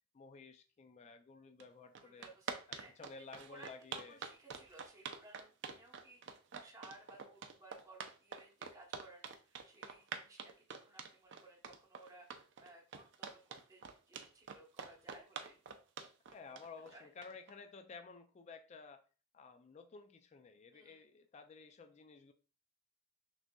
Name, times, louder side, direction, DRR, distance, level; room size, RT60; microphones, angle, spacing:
voice 1, 0.1-2.3 2.7-4.2 16.3-19.0 19.3-22.3, left 4 dB, 35° left, 7 dB, 0.3 m, -54 dB
sound 1, 1.6-1.7 1.9-17.5, right 6 dB, 60° right, 0.5 m, -46 dB
voice 2, 2.0-2.9 3.2-15.6 16.9-17.1 20.7-21.0, right 2 dB, 15° right, -1 dB, 0.8 m, -59 dB
6.0 x 2.6 x 2.2 m, 0.36 s
head